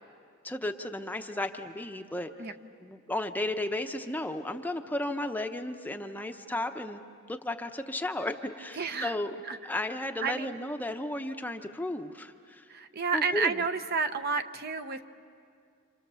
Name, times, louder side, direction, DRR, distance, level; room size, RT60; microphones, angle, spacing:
voice 1, 0.4-2.3 2.8-7.0 7.3-9.4 9.6-12.7 13.1-13.6, left 1 dB, 10° left, 6 dB, 0.7 m, -34 dB
voice 2, 8.8-9.1 9.5-9.6 10.2-10.6 12.7-15.1, right 5 dB, 45° right, 9 dB, 0.8 m, -30 dB
28.0 x 27.5 x 7.0 m, 2.3 s
head